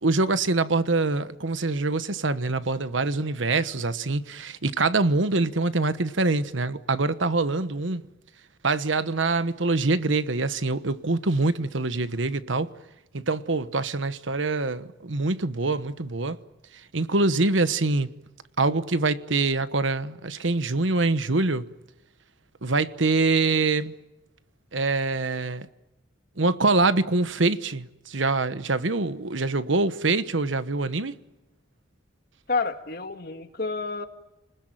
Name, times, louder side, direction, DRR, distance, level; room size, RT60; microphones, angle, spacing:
voice 1, 0.0-8.0 8.6-12.7 13.1-16.4 16.9-18.1 18.6-21.7 22.6-23.9 24.7-25.7 26.4-31.1, right 3 dB, 80° right, 1.2 m, -24 dB
voice 2, 32.5-34.1, left 4 dB, 50° left, 2.0 m, -29 dB
29.5 x 20.5 x 9.1 m
head